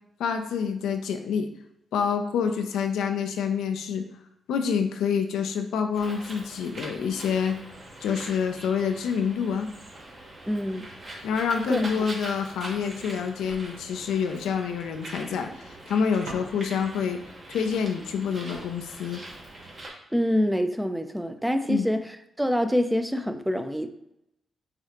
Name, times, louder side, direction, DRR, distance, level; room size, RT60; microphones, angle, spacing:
voice 1, 0.2-1.5 1.9-4.1 4.5-7.6 8.0-9.7 11.2-17.2 17.5-19.2 21.7-21.9, left 6 dB, 75° left, 5 dB, 0.4 m, -27 dB
Bird, 5.9-19.9, right 1 dB, 50° right, 1.3 m, -43 dB
voice 2, 10.5-10.9 11.7-12.0 20.1-23.9, equal, 5° right, 8 dB, 0.5 m, -26 dB
sound 1, 16.2-17.0 18.1-18.2 18.5-20.0 20.7-21.1, right 2 dB, 80° right, 0.8 m, -45 dB
5.6 x 2.4 x 2.9 m, 0.80 s
hypercardioid pair, 40°, 0 cm